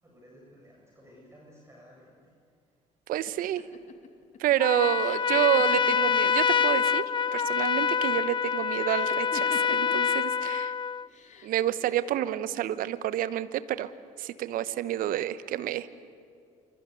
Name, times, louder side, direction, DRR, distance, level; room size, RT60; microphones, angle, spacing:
voice 1, 0.0-2.3, equal, 15° right, -3 dB, 7.7 m, -54 dB
voice 2, 3.1-3.7 4.4-7.0 7.3-10.7 11.4-13.9 14.2-15.9, right 12 dB, 60° right, 15 dB, 1.1 m, -29 dB
sound 1, 3.3-6.8 7.1-7.8 8.9-10.1 11.1-11.7, left 6 dB, 45° left, 2.9 m, -44 dB
Trumpet, 4.6-11.1, left 6 dB, 30° left, 0.6 m, -26 dB
26.0 x 25.5 x 8.2 m, 2.4 s
hypercardioid pair, 55°, 17 cm